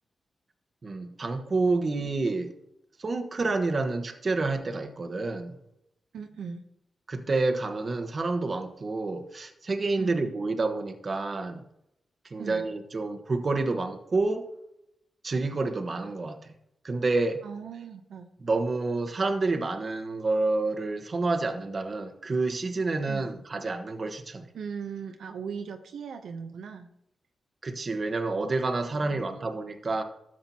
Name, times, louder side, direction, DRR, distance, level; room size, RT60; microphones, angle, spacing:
voice 1, 0.8-2.5 3.0-5.5 7.1-11.6 12.3-14.5 15.2-16.5 16.8-17.4 18.4-24.5 27.6-30.0, right 3 dB, 45° right, 5 dB, 1.2 m, -28 dB
voice 2, 6.1-6.6 10.0-10.3 12.4-12.7 17.4-18.3 23.1-23.3 24.5-26.9 28.9-29.4, right 6 dB, 85° right, 5 dB, 0.8 m, -39 dB
13.0 x 7.7 x 2.9 m, 0.81 s
cardioid pair, 65°, 0 cm